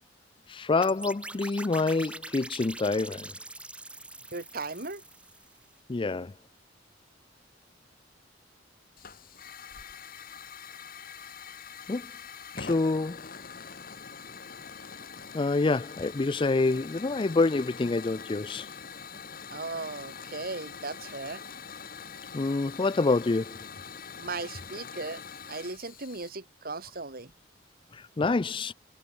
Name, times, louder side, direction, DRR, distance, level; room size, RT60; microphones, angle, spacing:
voice 1, 0.5-3.3 5.9-6.3 11.9-12.1 12.6-13.2 15.3-18.7 22.3-23.7 27.9-28.7, left 3 dB, 25° left, 0.4 m, -27 dB
sound 1, 0.8-5.6, right 2 dB, 5° right, 1.4 m, -43 dB
voice 2, 4.3-5.0 19.5-21.4 24.2-25.2 25.5-27.3, right 3 dB, 55° right, 3.0 m, -37 dB
Hiss / Fire, 9.0-26.3, left 6 dB, 50° left, 2.5 m, -44 dB
head